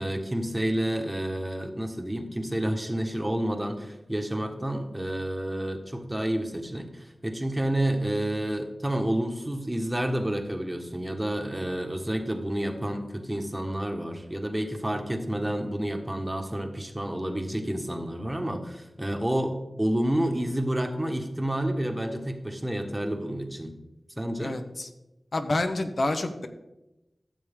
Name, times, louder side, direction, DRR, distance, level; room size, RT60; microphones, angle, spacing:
voice 1, 0.0-23.7 24.2-24.6, right 1 dB, 20° right, 5 dB, 1.4 m, -29 dB
voice 2, 24.4-24.9 25.3-26.5, left 2 dB, 60° left, 6 dB, 0.9 m, -28 dB
14.0 x 7.0 x 3.6 m, 0.96 s
cardioid pair, 45°, 0 cm